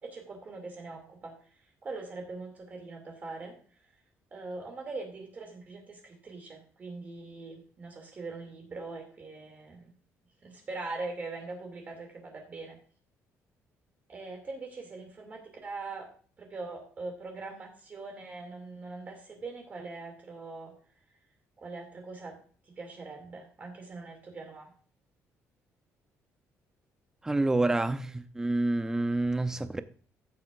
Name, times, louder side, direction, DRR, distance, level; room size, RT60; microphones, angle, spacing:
voice 1, 0.0-3.6 4.3-9.9 10.4-12.8 14.1-16.1 16.4-20.7 21.6-22.4 22.7-24.7, right 3 dB, 30° right, 2.4 m, -42 dB
voice 2, 27.2-29.8, right 2 dB, 10° right, 0.6 m, -28 dB
14.5 x 7.7 x 2.5 m
cardioid pair, 160°, 5 cm